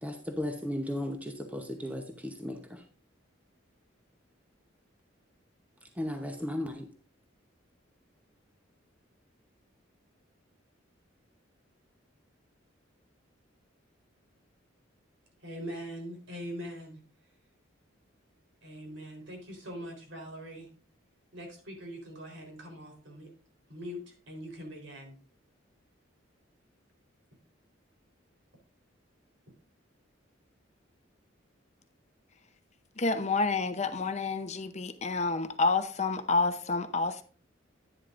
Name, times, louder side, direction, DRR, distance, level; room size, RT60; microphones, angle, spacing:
voice 1, 0.0-2.8 6.0-6.9, left 1 dB, 10° right, 0.8 m, -35 dB
voice 2, 15.4-17.0 18.6-20.7 21.3-23.3 23.7-24.0 24.3-25.1, equal, 70° right, 3.9 m, -42 dB
voice 3, 33.0-37.2, left 3 dB, 35° left, 0.8 m, -29 dB
11.0 x 10.0 x 2.5 m
head